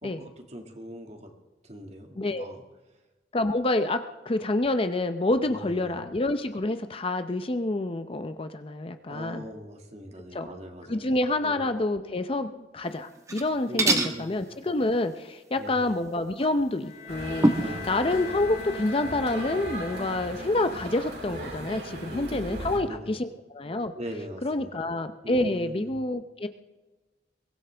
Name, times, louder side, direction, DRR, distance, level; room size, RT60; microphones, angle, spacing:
voice 1, 0.0-1.3 1.6-2.6 5.5-6.1 9.1-11.1 11.4-11.7 13.7-14.4 15.6-15.9 17.6-18.0 22.1-23.2 24.0-24.7 25.2-25.9, equal, 40° right, 3 dB, 2.0 m, -41 dB
voice 2, 3.3-9.4 10.3-10.5 10.9-23.9 24.4-26.5, left 2 dB, 30° left, 9 dB, 0.6 m, -28 dB
sound 1, 13.2-13.5 13.8-14.2 16.4-16.5 17.4-17.8, right 1 dB, 20° right, 1.2 m, -23 dB
Bowed string instrument, 16.8-20.8, left 6 dB, 75° left, 5.2 m, -41 dB
sound 2, 17.1-22.8, right 1 dB, 65° right, 5.3 m, -38 dB
23.0 x 17.0 x 3.4 m, 1.2 s
head